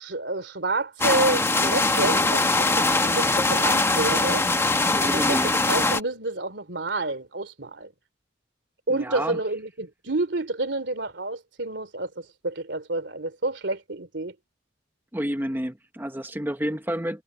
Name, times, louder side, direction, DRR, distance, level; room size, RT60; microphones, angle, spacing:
voice 1, 0.0-4.5 5.0-5.4 5.7-7.9 8.9-14.3, right 2 dB, 75° right, 2.9 m, -29 dB
sound 1, 1.0-6.0, left 2 dB, 15° left, 1.1 m, -22 dB
voice 2, 4.9-5.5 8.9-9.4 15.1-17.2, equal, 10° right, 1.0 m, -30 dB
head